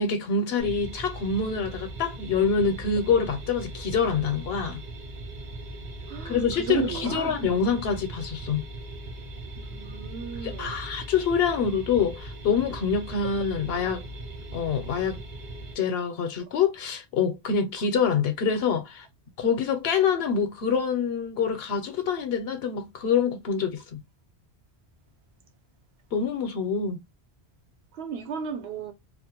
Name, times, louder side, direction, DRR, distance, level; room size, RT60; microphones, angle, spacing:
voice 1, 0.0-4.8 6.2-8.7 10.4-14.0 14.5-15.2 15.8-19.1 19.4-24.0 26.1-27.0, left 6 dB, 70° left, 0.8 m, -26 dB
sound 1, 0.6-15.7, right 1 dB, 50° right, 0.6 m, -39 dB
voice 2, 6.1-7.4 9.6-10.8 27.9-28.9, right 7 dB, 75° right, 0.8 m, -34 dB
2.3 x 2.1 x 2.8 m
omnidirectional pair, 1.1 m